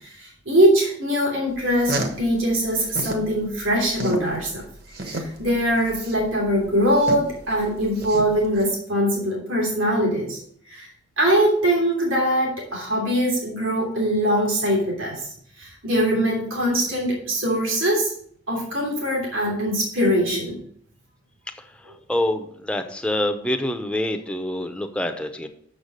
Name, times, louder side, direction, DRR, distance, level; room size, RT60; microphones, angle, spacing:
voice 1, 0.0-4.6 5.0-10.4 10.7-10.9 11.2-15.3 15.6-18.1 18.5-20.6, equal, 90° right, -3 dB, 3.1 m, -22 dB
sound 1, 1.6-3.3 3.6-8.6, right 1 dB, 50° right, 1.2 m, -31 dB
voice 2, 22.1-25.5, left 1 dB, 5° left, 6 dB, 0.6 m, -26 dB
6.9 x 6.6 x 5.4 m, 0.62 s
head